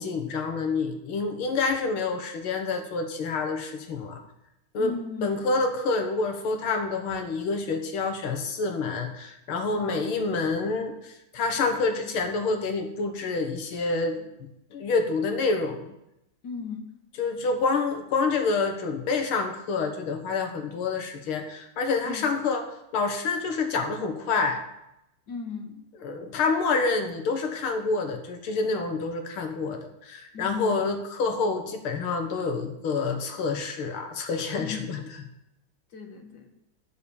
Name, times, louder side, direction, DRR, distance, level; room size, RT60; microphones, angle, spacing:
voice 1, 0.0-4.2 4.7-4.9 5.2-14.3 14.7-15.9 17.2-22.7 22.9-24.6 26.0-35.2, left 4 dB, 85° left, 6 dB, 2.2 m, -27 dB
voice 2, 4.8-5.3 9.7-10.0 16.4-16.9 22.1-22.3 25.3-25.8 30.3-30.8 34.6-34.9 35.9-36.5, left 5 dB, 55° left, 4 dB, 1.9 m, -36 dB
11.0 x 6.5 x 7.0 m, 0.84 s
omnidirectional pair, 2.3 m